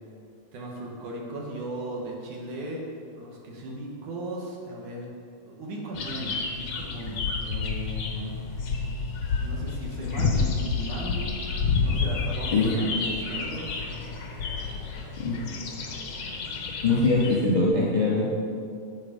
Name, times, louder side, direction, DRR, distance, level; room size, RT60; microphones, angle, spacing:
voice 1, 0.5-2.8 3.1-5.1 5.4-8.4 9.4-11.4 11.8-13.8, right 1 dB, 65° right, -2 dB, 3.0 m, -37 dB
sound 1, 5.9-17.4, left 4 dB, 75° left, 1.0 m, -30 dB
voice 2, 16.8-18.3, left 3 dB, 15° left, -5 dB, 1.6 m, -22 dB
12.0 x 8.6 x 5.2 m, 2.3 s
omnidirectional pair, 3.9 m